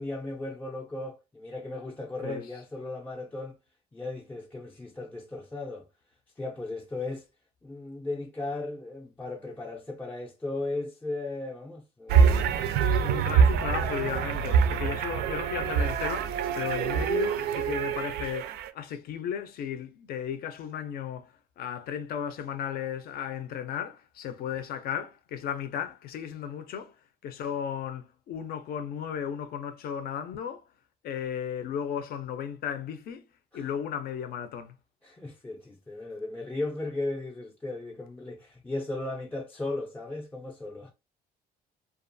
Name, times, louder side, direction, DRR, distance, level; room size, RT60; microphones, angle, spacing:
voice 1, 0.0-3.6 3.9-5.9 6.4-7.3 7.6-12.9 33.5-33.7 35.0-40.9, left 2 dB, 10° left, 0.4 m, -36 dB
sound 1, 12.1-18.7, right 6 dB, 75° right, 0.4 m, -25 dB
voice 2, 12.9-21.3 21.6-26.9 27.2-30.6 31.0-33.2 33.5-34.7, left 8 dB, 65° left, 0.5 m, -35 dB
2.4 x 2.3 x 2.6 m
cardioid pair, 110°, 17 cm